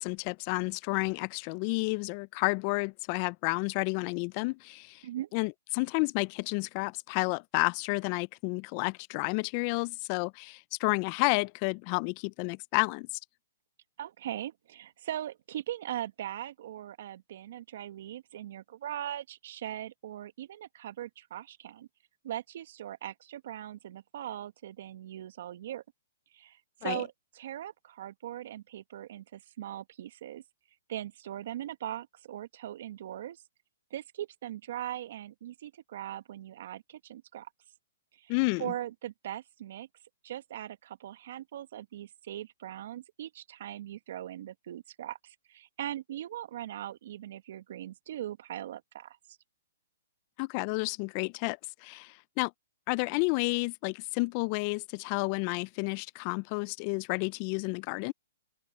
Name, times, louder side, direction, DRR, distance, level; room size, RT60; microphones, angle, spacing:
voice 1, 0.0-5.0 5.3-13.1 26.8-27.0 38.3-38.7 50.4-52.5 52.9-58.1, left 29 dB, 40° left, 0.5 m, -31 dB
voice 2, 14.0-21.9 22.2-25.8 26.3-30.4 30.9-33.4 33.9-37.5 38.2-38.3 38.6-39.9 40.2-49.4, right 12 dB, 60° right, 1.7 m, -40 dB
open air
hypercardioid pair, 135°, 0 cm